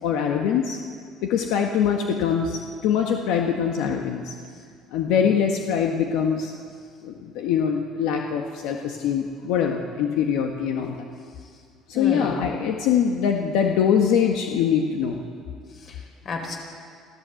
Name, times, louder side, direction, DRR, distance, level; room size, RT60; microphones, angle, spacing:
voice 1, 0.0-0.8 1.2-4.3 4.9-6.5 7.0-11.0 11.9-15.2, left 7 dB, 75° left, 2 dB, 1.7 m, -23 dB
voice 2, 11.9-12.5 15.7-16.6, left 3 dB, 35° left, 3 dB, 4.2 m, -32 dB
25.5 x 15.5 x 8.0 m, 2.1 s
cardioid pair, 165°, 0 cm